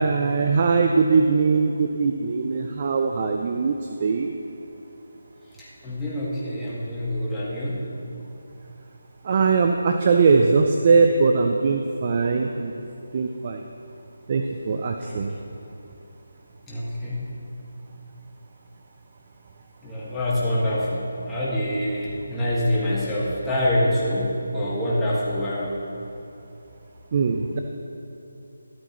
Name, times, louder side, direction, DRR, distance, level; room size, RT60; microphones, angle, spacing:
voice 1, 0.0-4.3 9.2-12.7 13.1-13.6 14.3-15.3 27.1-27.6, right 4 dB, 40° right, 4 dB, 0.6 m, -21 dB
voice 2, 5.6-7.8 15.0-15.4 16.7-17.2 19.8-25.8, left 1 dB, 10° left, -8 dB, 2.0 m, -26 dB
13.0 x 12.5 x 3.1 m, 2.8 s
figure-of-eight pair, 160°, 0 cm